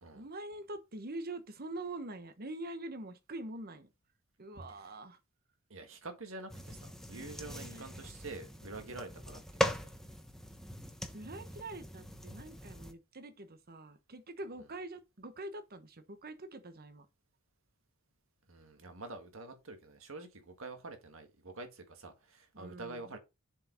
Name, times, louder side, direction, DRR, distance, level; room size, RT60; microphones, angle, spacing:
voice 1, 0.1-3.9 4.4-5.2 7.1-7.9 11.1-17.1 22.5-23.2, right 2 dB, 45° right, 1.1 m, -45 dB
voice 2, 5.7-9.4 9.8-9.9 18.5-23.2, right 3 dB, 70° right, 1.8 m, -47 dB
sound 1, 6.5-12.9, equal, ahead, 1.0 m, -40 dB
7.3 x 4.9 x 4.4 m
head